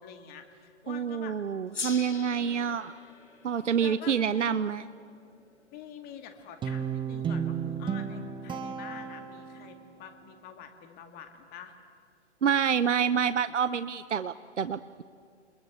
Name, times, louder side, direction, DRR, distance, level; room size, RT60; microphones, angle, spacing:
voice 1, 0.0-1.4 3.8-4.2 5.7-11.8, left 8 dB, 25° left, 6 dB, 2.2 m, -46 dB
voice 2, 0.9-2.9 3.4-4.9 12.4-15.0, right 7 dB, 85° right, 14 dB, 0.8 m, -27 dB
Gong, 1.7-6.5, left 4 dB, 85° left, 1.9 m, -43 dB
Guitar, 6.6-9.9, right 7 dB, 15° right, 1.1 m, -33 dB
30.0 x 21.5 x 8.5 m, 2.3 s
figure-of-eight pair, 120°, 35 cm